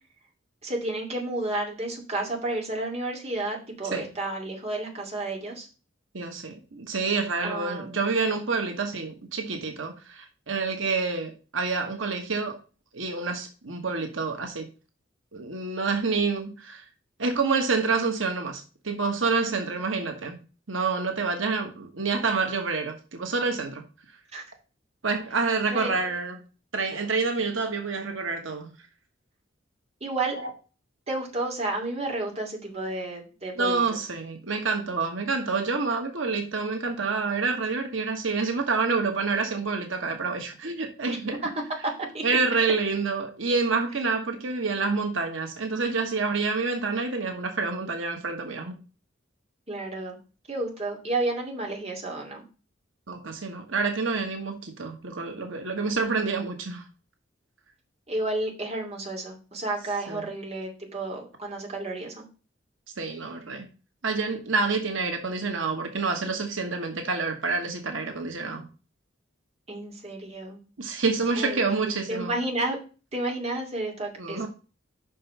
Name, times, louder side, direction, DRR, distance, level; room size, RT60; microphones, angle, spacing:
voice 1, 0.6-5.7 7.4-8.0 19.5-19.8 24.3-24.4 25.7-25.9 30.0-30.4 31.1-33.8 41.1-41.2 42.1-42.2 49.7-50.2 50.5-52.4 58.1-62.2 69.7-70.6 71.4-72.8 73.1-74.5, right 2 dB, 35° right, 2.3 m, -31 dB
voice 2, 6.1-12.6 12.9-14.7 15.3-16.8 17.2-20.4 20.7-23.8 25.0-26.4 26.7-28.7 30.3-30.5 33.6-41.4 42.2-48.8 53.1-56.8 60.1-60.2 63.0-63.7 64.0-68.7 70.8-72.3 74.2-74.5, right 4 dB, 85° right, 1.3 m, -28 dB
5.9 x 5.4 x 5.4 m
head